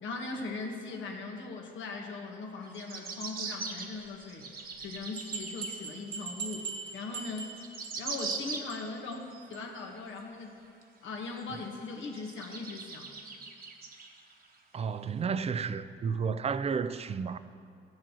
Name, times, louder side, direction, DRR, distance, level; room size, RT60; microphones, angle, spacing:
voice 1, 0.0-4.5 4.8-7.5 8.0-10.5 11.0-13.1, left 3 dB, 75° left, 1.4 m, -40 dB
sound 1, 2.6-5.8 6.2-6.3 7.1-7.2 7.4-8.9 9.3-10.2 10.8-10.9 11.4-11.5 12.0-14.5 14.9-15.0, right 4 dB, 50° right, 1.0 m, -41 dB
sound 2, 4.7-4.8 5.2-7.9 8.2-8.4 8.7-8.8 9.1-9.2 9.5-9.6, right 5 dB, 80° right, 1.7 m, -40 dB
voice 2, 14.7-17.4, right 6 dB, 30° right, 0.4 m, -32 dB
15.0 x 7.5 x 2.9 m
cardioid pair, 90°, 20 cm